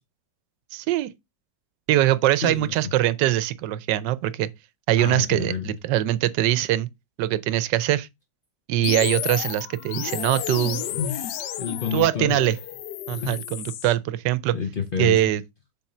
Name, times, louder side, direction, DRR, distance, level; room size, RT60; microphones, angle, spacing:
voice 1, 0.7-1.1 1.9-4.5 4.9-6.9 7.2-8.1 8.7-10.8 11.9-12.6 13.1-14.6 15.0-15.4, right 13 dB, 85° right, 1.2 m, -22 dB
voice 2, 2.4-2.7 5.0-5.7 10.7-11.3 11.6-12.4 13.2-13.4 14.5-15.2, left 6 dB, 45° left, 0.8 m, -29 dB
sound 1, 8.8-13.9, left 11 dB, 75° left, 1.2 m, -32 dB
7.1 x 3.8 x 4.3 m
omnidirectional pair, 1.8 m